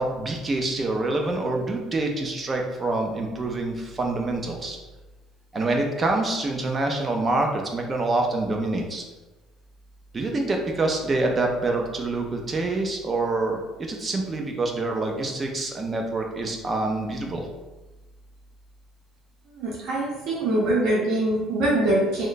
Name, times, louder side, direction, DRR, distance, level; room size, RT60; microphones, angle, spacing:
voice 1, 0.0-4.8 5.5-9.0 10.1-17.4, right 2 dB, 25° right, 2 dB, 0.5 m, -26 dB
voice 2, 19.6-22.3, right 1 dB, 70° right, -5 dB, 0.7 m, -23 dB
3.1 x 2.1 x 3.9 m, 1.1 s
cardioid pair, 140°, 0 cm